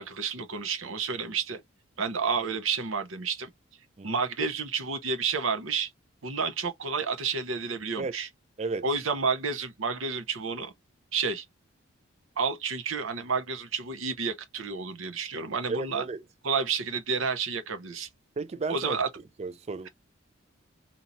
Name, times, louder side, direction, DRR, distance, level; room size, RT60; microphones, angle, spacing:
voice 1, 0.0-1.6 2.0-3.5 4.0-5.9 6.2-8.3 8.8-10.7 11.1-11.4 12.4-16.0 16.4-18.1 18.7-19.1, right 5 dB, 85° right, 0.8 m, -30 dB
voice 2, 15.7-16.2 18.4-19.0 19.4-19.9, right 4 dB, 30° right, 0.3 m, -33 dB
2.9 x 2.7 x 3.9 m
head